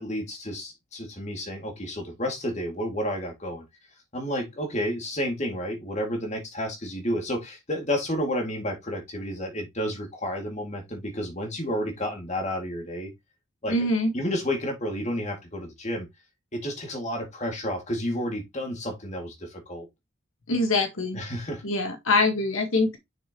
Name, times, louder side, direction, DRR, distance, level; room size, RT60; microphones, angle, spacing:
voice 1, 0.0-3.6 4.1-13.1 13.6-13.9 14.1-16.1 16.5-19.9 21.1-21.6, equal, 35° left, 2.3 m, -31 dB
voice 2, 13.7-14.1 20.5-21.2 21.6-23.0, left 2 dB, 75° left, 1.5 m, -24 dB
6.7 x 6.4 x 3.0 m
head